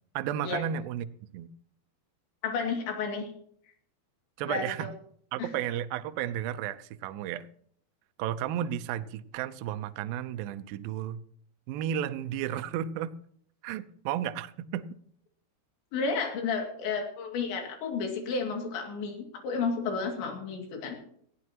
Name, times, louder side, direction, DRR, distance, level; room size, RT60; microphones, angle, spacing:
voice 1, 0.2-1.5 4.4-4.9 5.3-7.5 8.2-11.2 11.7-13.1 13.6-14.9, right 10 dB, 85° right, 10 dB, 2.0 m, -33 dB
voice 2, 2.4-3.3 4.5-4.9 5.4-5.5 15.9-21.0, left 4 dB, 85° left, 3 dB, 4.7 m, -32 dB
19.0 x 14.5 x 3.0 m, 0.63 s
omnidirectional pair, 5.1 m